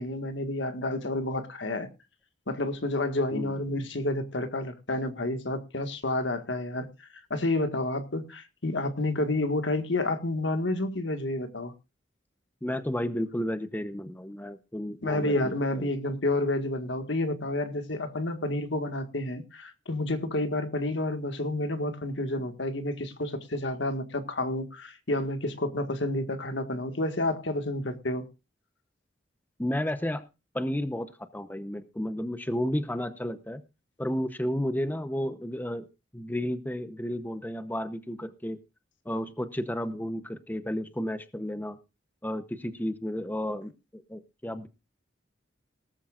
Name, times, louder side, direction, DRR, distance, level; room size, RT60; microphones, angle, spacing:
voice 1, 0.0-1.9 2.5-6.9 7.3-11.7 15.0-28.2, left 2 dB, 70° left, 1.7 m, -30 dB
voice 2, 12.6-15.5 15.8-15.9 29.6-30.2 30.5-33.6 34.0-35.9 36.1-38.6 39.0-41.8 42.2-44.7, equal, 10° left, 0.8 m, -32 dB
18.5 x 13.5 x 2.5 m
head